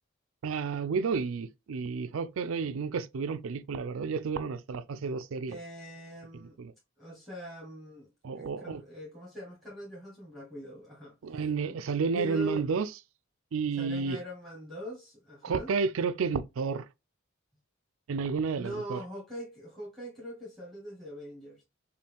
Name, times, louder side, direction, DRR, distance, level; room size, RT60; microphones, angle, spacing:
voice 1, 0.4-5.6 6.6-6.7 8.2-8.8 11.2-12.9 13.5-14.2 15.4-16.9 18.1-19.0, right 5 dB, 75° right, 0.4 m, -31 dB
voice 2, 5.5-6.6 7.0-11.1 12.1-12.6 13.8-15.7 18.5-21.6, right 1 dB, ahead, 1.1 m, -42 dB
5.3 x 2.3 x 3.4 m
head